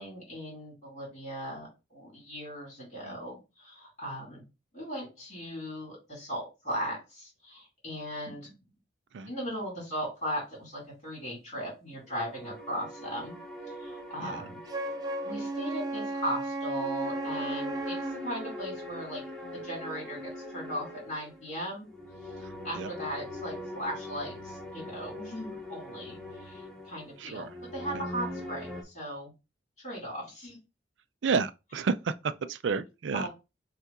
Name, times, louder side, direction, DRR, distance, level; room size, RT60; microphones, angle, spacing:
voice 1, 0.0-4.4 4.7-8.5 9.3-13.3 13.8-14.6 15.2-21.9 22.6-29.3 29.8-30.6 33.1-33.3, equal, 40° left, 2.4 m, -38 dB
sound 1, 12.1-28.8, left 1 dB, 5° left, 0.7 m, -42 dB
Wind instrument woodwind instrument, 14.7-18.2, right 2 dB, 20° right, 0.3 m, -34 dB
voice 2, 27.2-27.5 27.9-28.0 31.2-33.3, right 5 dB, 85° right, 0.4 m, -31 dB
5.4 x 2.5 x 3.7 m
head